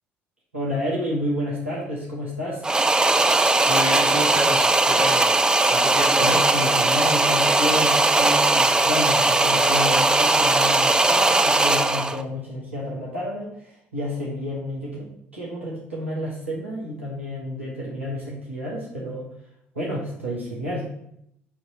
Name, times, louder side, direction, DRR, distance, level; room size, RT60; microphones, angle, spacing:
voice 1, 0.5-2.7 6.2-19.3 19.7-20.9, left 1 dB, 85° right, -6 dB, 1.2 m, -30 dB
sound 1, 2.6-12.2, right 2 dB, 10° right, 0.4 m, -19 dB
voice 2, 3.7-5.3 5.7-6.4 9.5-9.6, equal, 70° right, -2 dB, 1.4 m, -29 dB
7.2 x 2.9 x 5.6 m, 0.74 s
figure-of-eight pair, 55°, 6 cm